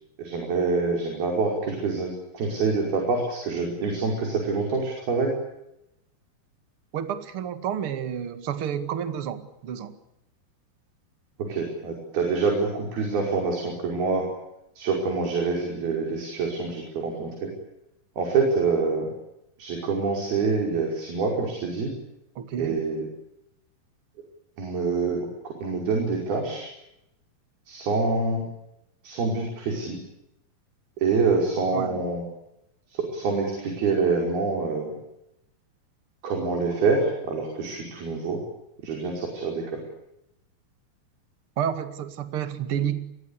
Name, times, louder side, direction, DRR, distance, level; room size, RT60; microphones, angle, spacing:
voice 1, 0.2-5.3 11.4-14.3 14.8-17.5 18.2-19.1 19.6-21.9 22.6-23.1 24.6-26.7 27.7-28.4 29.0-30.0 31.0-32.2 32.9-34.9 36.2-38.4 38.8-39.8, right 4 dB, 70° right, 1 dB, 7.2 m, -26 dB
voice 2, 6.9-10.0 22.4-22.8 31.7-32.0 41.6-43.0, right 9 dB, 40° right, 10 dB, 2.4 m, -30 dB
29.0 x 22.0 x 8.5 m, 0.85 s
omnidirectional pair, 4.5 m